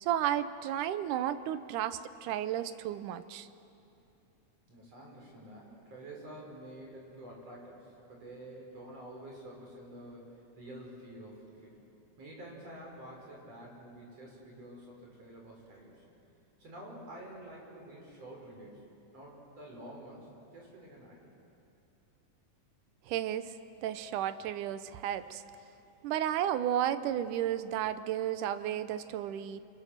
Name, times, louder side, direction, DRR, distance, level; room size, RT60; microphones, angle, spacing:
voice 1, 0.0-3.5 23.1-25.4 26.0-29.6, right 11 dB, 85° right, 12 dB, 2.3 m, -33 dB
voice 2, 4.7-11.8 12.2-16.0 16.6-18.8 19.1-21.3, right 1 dB, 50° right, -2 dB, 6.6 m, -49 dB
29.5 x 26.0 x 6.7 m, 2.7 s
omnidirectional pair, 3.6 m